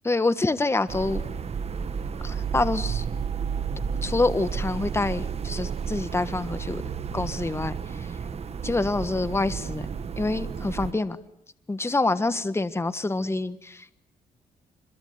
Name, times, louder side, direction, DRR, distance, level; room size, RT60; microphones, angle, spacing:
voice 1, 0.0-1.2 2.2-3.1 4.0-6.8 7.1-8.2 8.6-9.9 10.2-11.2 11.7-13.9, left 2 dB, 20° left, 13 dB, 1.5 m, -26 dB
sound 1, 0.9-10.9, right 6 dB, 45° right, 1.7 m, -32 dB
25.5 x 22.5 x 9.5 m, 0.70 s
cardioid pair, 90°, 14 cm